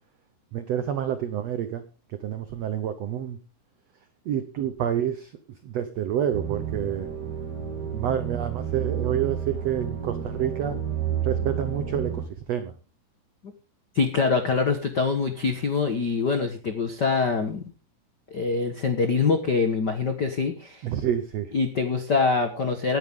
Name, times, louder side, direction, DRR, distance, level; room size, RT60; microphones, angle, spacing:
voice 1, 0.5-1.8 2.2-3.4 4.3-5.3 5.6-7.1 7.9-10.8 11.2-12.2 12.5-12.7 20.8-21.5, right 10 dB, 90° right, 10 dB, 1.4 m, -28 dB
sound 1, 6.3-12.3, right 8 dB, 35° right, 2.0 m, -30 dB
voice 2, 13.9-17.6 18.3-20.8 21.5-23.0, left 4 dB, 80° left, 7 dB, 0.9 m, -24 dB
18.0 x 10.5 x 3.7 m, 0.35 s
omnidirectional pair, 4.4 m